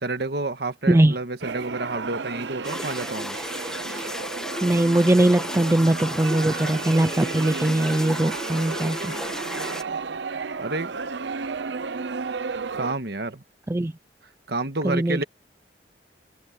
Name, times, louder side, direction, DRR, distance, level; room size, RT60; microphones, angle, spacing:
voice 1, 0.0-3.4 10.6-10.9 12.7-13.4 14.5-15.2, right 2 dB, 65° right, 1.6 m, -29 dB
sound 1, 1.4-12.9, right 4 dB, 80° right, 0.7 m, -33 dB
sound 2, 2.6-9.8, left 1 dB, 5° left, 1.8 m, -34 dB
voice 2, 4.6-9.1 13.7-13.9 14.8-15.2, right 1 dB, 15° right, 0.4 m, -21 dB
open air
head